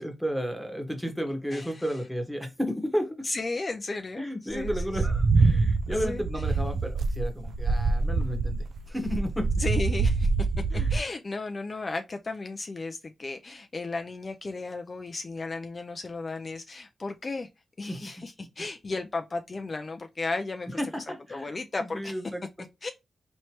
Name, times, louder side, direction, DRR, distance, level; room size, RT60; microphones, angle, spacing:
voice 1, 0.0-3.3 4.2-9.6 10.7-11.0 17.9-18.1 20.7-21.5 21.8-22.7, equal, ahead, 1.1 m, -33 dB
voice 2, 1.5-2.0 3.2-5.1 5.9-6.4 9.6-10.3 10.9-17.5 17.8-22.2 22.8-22.9, left 3 dB, 35° left, 0.4 m, -35 dB
sound 1, 4.5-11.0, right 4 dB, 60° right, 0.4 m, -25 dB
4.4 x 3.1 x 2.9 m
wide cardioid pair, 115°, 0 cm